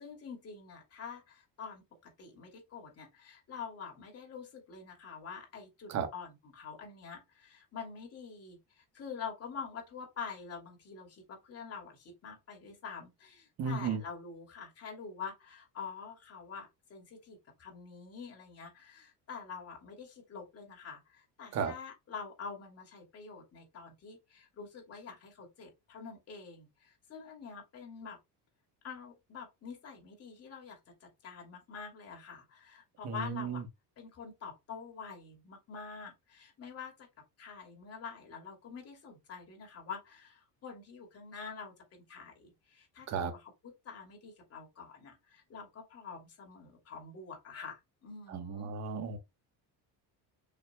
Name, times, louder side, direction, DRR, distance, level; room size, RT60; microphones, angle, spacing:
voice 1, 0.0-28.2 28.8-33.6 34.0-37.1 37.4-48.7, left 5 dB, 35° left, 2.8 m, -46 dB
voice 2, 13.6-14.0 21.5-21.7 33.0-33.6 43.1-43.3 48.3-49.2, right 6 dB, 40° right, 1.2 m, -34 dB
7.1 x 5.9 x 2.3 m
cardioid pair, 170°, 43 cm